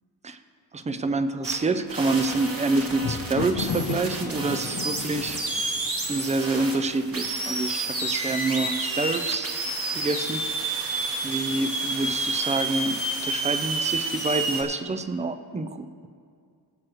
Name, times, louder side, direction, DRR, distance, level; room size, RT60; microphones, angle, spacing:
voice 1, 0.7-5.4 6.0-9.5 9.9-10.4 11.2-16.1, right 3 dB, 20° right, 10 dB, 0.3 m, -27 dB
sound 1, 1.4-1.6 1.9-14.6, right 2 dB, 35° right, 1.3 m, -30 dB
Thunder, 2.3-7.1 7.9-8.4 8.6-8.7, left 6 dB, 70° left, 0.8 m, -34 dB
17.5 x 7.7 x 3.1 m, 2.2 s
wide cardioid pair, 160°, 40 cm